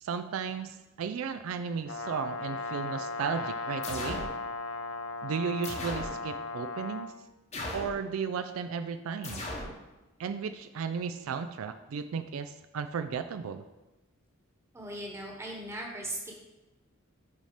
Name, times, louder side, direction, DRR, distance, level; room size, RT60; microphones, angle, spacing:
voice 1, 0.0-4.3 5.2-7.1 7.7-9.5 10.2-13.6, right 6 dB, 75° right, 10 dB, 0.3 m, -34 dB
Brass instrument, 1.9-7.1, left 3 dB, 65° left, 0.6 m, -37 dB
sound 1, 3.8-4.4 5.6-6.2 7.5-8.0 9.2-9.8, left 1 dB, 30° left, 0.9 m, -37 dB
voice 2, 14.7-16.3, right 1 dB, 15° right, -1 dB, 1.1 m, -38 dB
6.2 x 4.2 x 5.0 m, 1.0 s
head